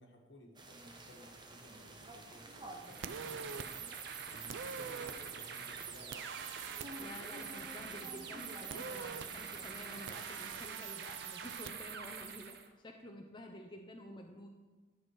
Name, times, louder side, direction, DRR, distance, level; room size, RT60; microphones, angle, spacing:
voice 1, 0.0-6.5, equal, 70° left, 0 dB, 1.8 m, -57 dB
sound 1, 0.5-10.7, right 2 dB, 25° right, 1.0 m, -52 dB
sound 2, 2.8-12.7, right 7 dB, 60° right, 0.8 m, -46 dB
sound 3, 3.0-3.7 4.5-5.1 6.1-6.9 8.7-9.3 10.1-11.7, right 6 dB, 90° right, 0.4 m, -45 dB
voice 2, 7.0-12.6 12.8-14.5, left 1 dB, 25° left, 2 dB, 0.6 m, -50 dB
11.5 x 6.1 x 4.8 m, 1.3 s
head